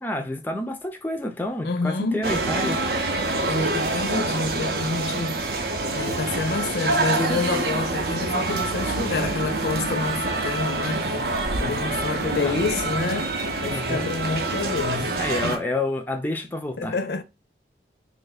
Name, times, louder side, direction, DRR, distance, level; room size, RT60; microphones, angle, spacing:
voice 1, 0.0-2.8 12.4-12.5 13.7-14.1 15.0-16.9, left 1 dB, 10° left, 0.4 m, -29 dB
voice 2, 1.6-2.4 3.3-5.7 5.9-15.1 15.4-15.6 16.8-17.2, left 4 dB, 65° left, 0.5 m, -28 dB
sound 1, 2.2-15.6, right 2 dB, 65° right, 0.6 m, -26 dB
3.0 x 2.5 x 4.0 m
head